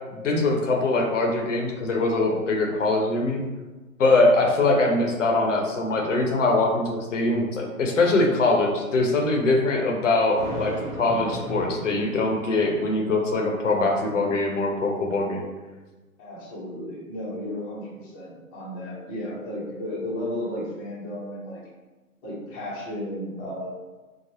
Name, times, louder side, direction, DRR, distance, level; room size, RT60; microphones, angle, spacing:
voice 1, 0.1-3.4 4.0-10.7 11.0-15.5, left 2 dB, 55° left, 1 dB, 0.7 m, -22 dB
voice 2, 10.4-10.9 16.2-21.6 22.2-23.7, left 1 dB, 15° left, -8 dB, 0.6 m, -34 dB
Thunder, 10.4-12.9, right 1 dB, 60° right, 1.1 m, -35 dB
4.7 x 2.0 x 2.9 m, 1.2 s
figure-of-eight pair, 130°, 45 cm